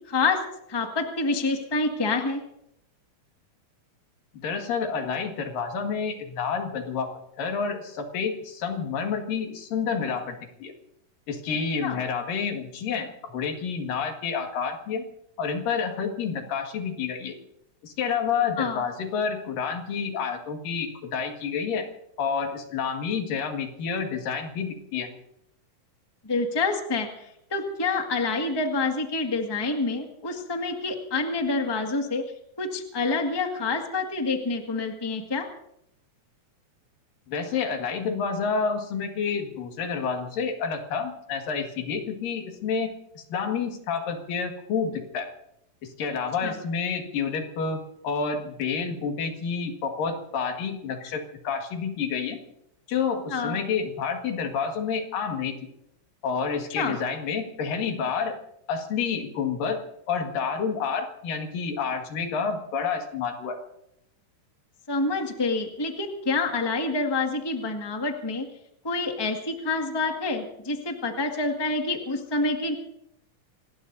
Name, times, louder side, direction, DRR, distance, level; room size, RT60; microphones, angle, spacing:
voice 1, 0.1-0.4 0.7-2.4 11.8-12.0 18.6-18.8 26.2-27.1 27.5-32.2 32.6-35.5 46.4-46.5 53.3-53.6 56.7-57.0 64.9-68.5 68.8-72.7, left 3 dB, 15° left, 3 dB, 1.0 m, -27 dB
voice 2, 4.4-7.1 7.4-10.7 11.3-15.0 15.4-17.4 17.8-21.9 22.2-25.1 37.3-45.3 45.8-52.4 52.9-55.6 56.2-58.4 58.7-63.6, left 6 dB, 90° left, 4 dB, 3.6 m, -29 dB
26.5 x 19.5 x 2.7 m, 0.79 s
omnidirectional pair, 3.8 m